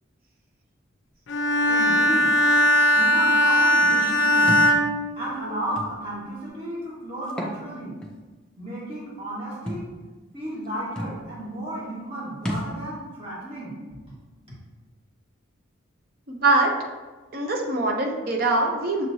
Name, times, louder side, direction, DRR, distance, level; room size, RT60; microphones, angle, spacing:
Bowed string instrument, 1.3-5.8, equal, 65° left, 0.4 m, -20 dB
voice 1, 1.7-2.4 3.0-4.6 5.1-8.0 8.6-9.8 10.3-14.0, right 1 dB, 30° right, -7 dB, 1.5 m, -33 dB
Thump thud, 4.5-4.7 5.8-5.9 7.2-7.6 8.0-8.1 9.7-9.9 10.6-10.7 11.0-11.2 12.4-12.7, equal, 5° left, 0.4 m, -30 dB
voice 2, 16.3-16.7 17.3-19.1, right 2 dB, 50° right, 1 dB, 0.6 m, -23 dB
6.3 x 3.0 x 2.7 m, 1.3 s
head